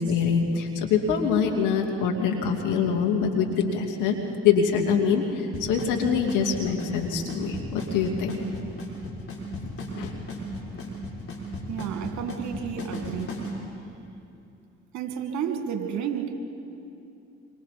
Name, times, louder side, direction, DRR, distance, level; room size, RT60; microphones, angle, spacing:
voice 1, 0.0-4.2 4.4-8.4 9.5-10.1 10.7-10.9, left 6 dB, 65° left, 2 dB, 2.6 m, -25 dB
Drum kit / Snare drum / Bass drum, 5.5-13.5, left 2 dB, 40° left, 6.0 m, -35 dB
voice 2, 11.7-13.3 14.9-16.3, right 8 dB, 60° right, 5 dB, 2.2 m, -31 dB
27.5 x 24.5 x 4.3 m, 2.6 s
hypercardioid pair, 55°, 33 cm